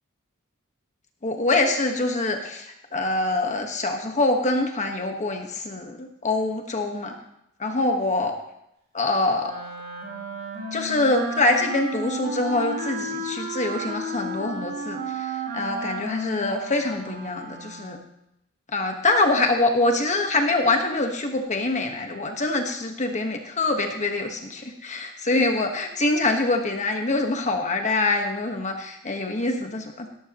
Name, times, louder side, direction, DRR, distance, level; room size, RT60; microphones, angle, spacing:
voice 1, 1.2-7.1 7.6-8.3 8.9-9.5 10.7-18.0 18.7-30.1, left 2 dB, 35° left, 4 dB, 1.3 m, -24 dB
Wind instrument woodwind instrument, 9.4-18.1, right 2 dB, 45° right, 3.8 m, -33 dB
18.0 x 12.5 x 3.0 m, 0.80 s
head